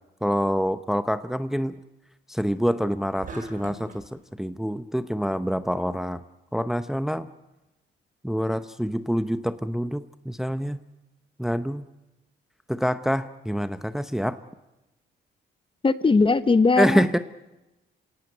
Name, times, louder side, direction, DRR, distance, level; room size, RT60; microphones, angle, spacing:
voice 1, 0.2-1.7 2.3-6.2 6.5-7.3 8.2-10.8 11.4-11.8 12.7-14.4 16.8-17.2, equal, ahead, 12 dB, 0.8 m, -26 dB
sound 1, 3.2-4.1, right 2 dB, 45° right, 7.9 m, -39 dB
voice 2, 15.8-17.2, left 4 dB, 25° left, 14 dB, 1.0 m, -20 dB
26.5 x 18.0 x 9.2 m, 1.0 s
cardioid pair, 90°, 20 cm